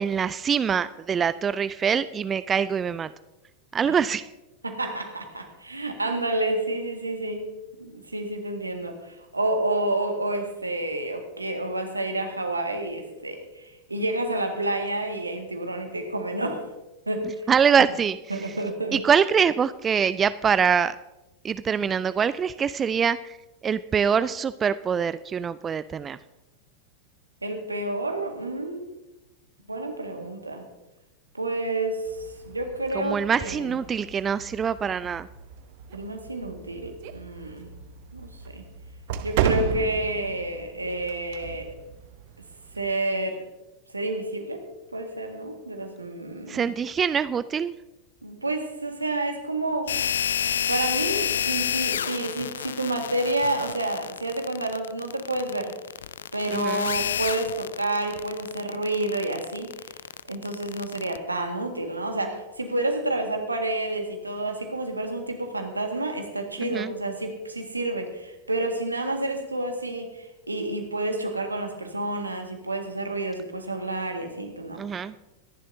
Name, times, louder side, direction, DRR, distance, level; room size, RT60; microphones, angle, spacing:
voice 1, 0.0-3.1 3.7-4.2 17.5-18.5 18.9-21.0 21.4-23.4 23.6-26.2 33.0-35.3 46.5-47.7 56.5-56.9 66.6-66.9 74.8-75.1, right 7 dB, 20° right, 16 dB, 0.3 m, -24 dB
voice 2, 4.6-7.5 7.8-16.6 17.1-17.5 18.3-19.0 27.4-28.9 29.7-30.6 31.3-32.0 32.5-33.8 35.9-37.7 38.1-38.6 39.2-41.7 42.7-43.4 43.9-44.6 44.9-46.7 48.2-49.9 50.4-55.7 56.3-59.7 60.3-74.8, right 2 dB, 80° right, 4 dB, 1.8 m, -29 dB
sound 1, 32.0-42.9, right 9 dB, 50° right, 0.7 m, -34 dB
sound 2, 49.9-61.2, left 9 dB, 65° left, 0.3 m, -30 dB
24.0 x 11.0 x 2.7 m, 1.0 s
figure-of-eight pair, 90°, 0 cm